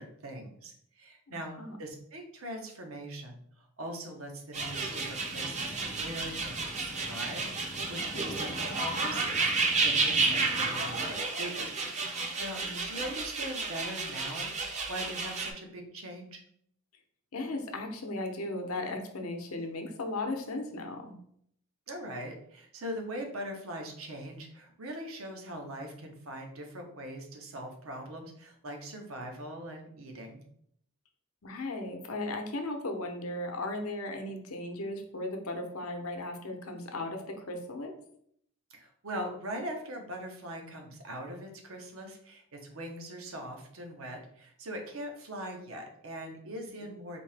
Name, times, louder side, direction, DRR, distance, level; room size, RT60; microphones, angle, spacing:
voice 1, 0.0-1.5 1.8-11.7 12.4-12.6 12.9-14.5 14.9-16.4 21.9-30.4 38.7-47.2, right 1 dB, 70° right, 3 dB, 0.8 m, -41 dB
voice 2, 1.3-1.8 12.5-12.8 17.3-21.2 31.4-37.9, left 2 dB, 80° left, 4 dB, 0.7 m, -36 dB
sound 1, 4.5-15.5, right 3 dB, 35° right, 0.6 m, -31 dB
sound 2, 4.6-11.1, left 1 dB, 15° left, 0.4 m, -45 dB
4.2 x 2.7 x 3.3 m, 0.68 s
head